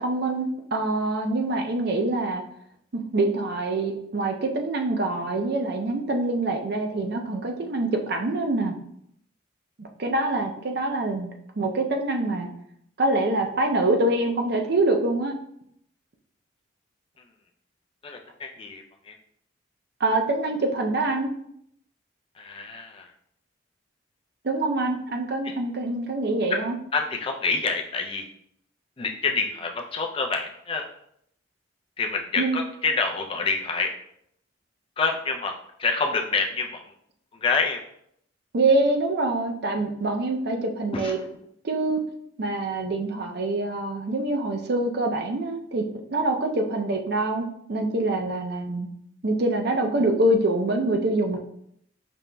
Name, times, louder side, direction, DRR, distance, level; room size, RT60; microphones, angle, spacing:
voice 1, 0.0-2.4 3.1-8.7 9.8-11.3 11.6-12.5 13.0-15.3 20.0-21.3 24.4-26.8 32.4-32.6 38.5-41.2 41.6-42.0 42.4-45.8 46.1-48.9 49.2-51.4, right 2 dB, 50° right, 3 dB, 0.5 m, -25 dB
voice 2, 18.0-19.1 22.4-23.1 26.5-26.6 26.9-28.2 29.0-30.9 32.0-33.9 35.0-35.5 35.8-36.8 37.4-37.8 40.9-41.1, left 4 dB, 25° left, 3 dB, 0.3 m, -27 dB
5.1 x 2.9 x 2.2 m, 0.72 s
head